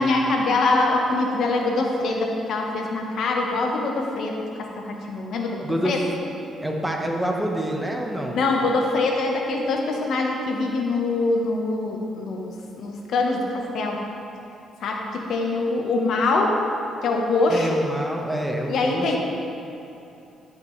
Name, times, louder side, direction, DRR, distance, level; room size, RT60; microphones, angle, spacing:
voice 1, 0.0-6.0 8.3-14.0 14.8-16.6 17.0-17.8 18.7-19.2, left 3 dB, 70° left, 1 dB, 1.1 m, -24 dB
voice 2, 5.6-6.0 6.6-8.4 17.5-19.2, right 1 dB, 5° right, 0 dB, 1.1 m, -27 dB
14.5 x 6.0 x 3.2 m, 2.8 s
cardioid pair, 90°, 0 cm